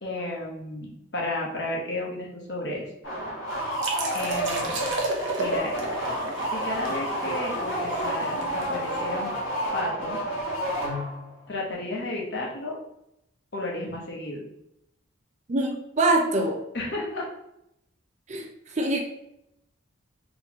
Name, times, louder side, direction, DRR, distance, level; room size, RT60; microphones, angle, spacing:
voice 1, 0.0-2.9 4.1-4.8 5.4-5.8 6.5-9.3 9.7-10.2 11.5-12.8 13.5-14.4 16.7-17.3, left 2 dB, 55° left, -2 dB, 1.0 m, -32 dB
sound 1, 3.0-11.4, right 1 dB, 80° left, 1.4 m, -30 dB
sound 2, 3.8-9.4, right 2 dB, 70° right, 0.8 m, -33 dB
voice 2, 15.5-16.6 18.3-19.0, right 2 dB, 35° right, 3 dB, 0.4 m, -24 dB
4.0 x 3.0 x 2.9 m, 0.82 s
head